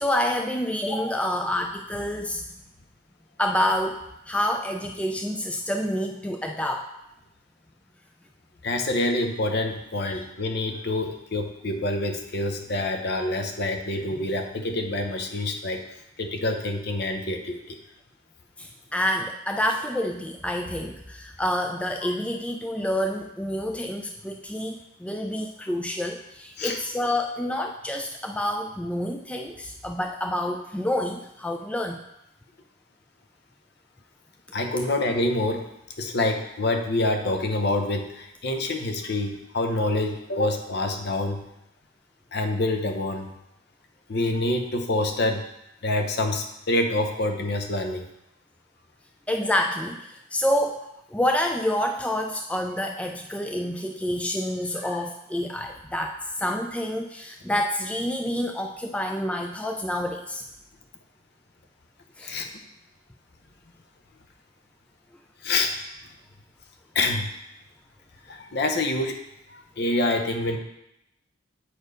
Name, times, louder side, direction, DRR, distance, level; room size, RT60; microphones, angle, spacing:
voice 1, 0.0-2.4 3.4-6.9 10.1-10.2 18.6-32.0 49.3-60.4 62.2-62.4, left 1 dB, 5° left, 3 dB, 0.3 m, -28 dB
voice 2, 8.6-15.8 16.2-17.8 22.0-22.1 26.6-26.8 34.5-35.7 36.0-41.4 42.3-43.3 44.1-45.5 45.8-48.0 54.8-55.0 62.2-62.5 65.4-65.7 66.9-67.3 68.3-69.2 69.5-70.6, left 2 dB, 55° left, 5 dB, 0.8 m, -26 dB
8.0 x 4.4 x 5.0 m, 0.84 s
head